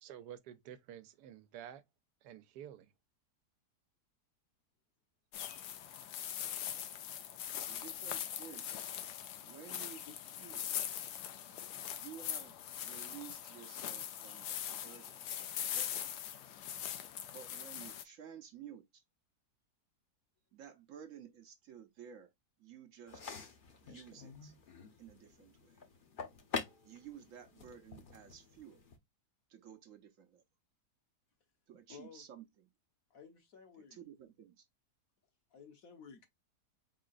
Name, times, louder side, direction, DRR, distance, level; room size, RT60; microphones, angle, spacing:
voice 1, 0.0-1.8 2.2-2.9, right 10 dB, 85° right, 1.2 m, -50 dB
sound 1, 5.3-18.0, left 10 dB, 75° left, 1.2 m, -42 dB
voice 2, 7.7-8.9 9.4-10.1 10.4-10.8 11.9-16.0 17.3-19.0 20.5-22.3 22.6-23.2 23.8-24.6 25.0-25.8 26.8-28.8 29.5-30.4 31.7-32.5 33.9-34.7, right 9 dB, 65° right, 0.9 m, -53 dB
sound 2, 23.1-29.0, left 5 dB, 40° left, 0.8 m, -46 dB
voice 3, 31.9-32.2 33.1-34.0 35.5-36.3, left 6 dB, 60° left, 1.4 m, -54 dB
4.8 x 3.8 x 2.4 m
omnidirectional pair, 1.7 m